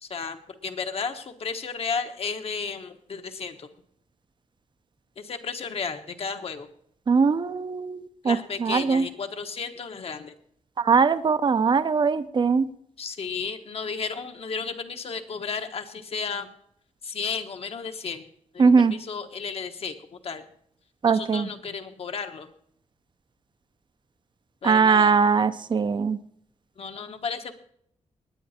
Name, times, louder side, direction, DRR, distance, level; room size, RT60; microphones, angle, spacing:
voice 1, 0.0-3.7 5.2-6.7 8.2-10.3 13.0-16.5 17.0-18.2 18.5-19.9 20.2-20.4 21.0-22.5 24.6-25.2 26.8-27.5, left 5 dB, 55° left, 6 dB, 1.3 m, -33 dB
voice 2, 7.1-9.1 10.8-12.6 18.6-19.0 21.0-21.5 24.6-26.2, right 5 dB, 40° right, 13 dB, 0.7 m, -21 dB
19.5 x 9.5 x 4.3 m, 0.68 s
wide cardioid pair, 140°, 12 cm